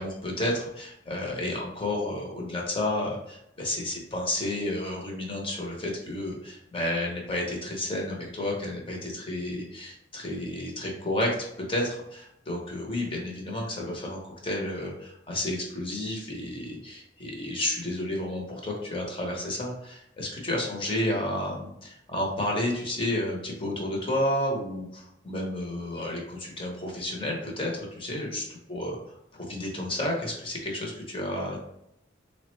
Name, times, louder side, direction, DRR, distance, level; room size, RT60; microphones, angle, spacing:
voice 1, 0.0-29.0 29.3-31.6, left 1 dB, 30° left, -1 dB, 0.7 m, -31 dB
3.5 x 2.1 x 3.0 m, 0.79 s
head